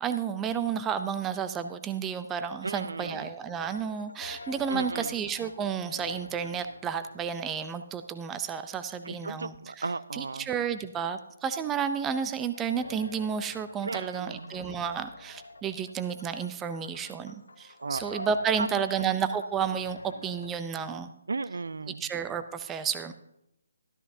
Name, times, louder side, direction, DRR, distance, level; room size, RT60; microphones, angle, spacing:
voice 1, 0.0-9.8 10.1-21.1 22.0-23.1, right 7 dB, 10° right, 10 dB, 0.5 m, -31 dB
voice 2, 2.6-3.3 4.7-5.2 9.0-10.5 13.8-14.6 17.8-18.2 18.6-19.1 21.3-22.1, right 4 dB, 80° right, 17 dB, 0.4 m, -35 dB
sound 1, 3.5-8.5 11.9-20.5, left 3 dB, 85° left, 0.9 m, -47 dB
13.0 x 12.0 x 2.7 m, 0.80 s
hypercardioid pair, 155°, 0 cm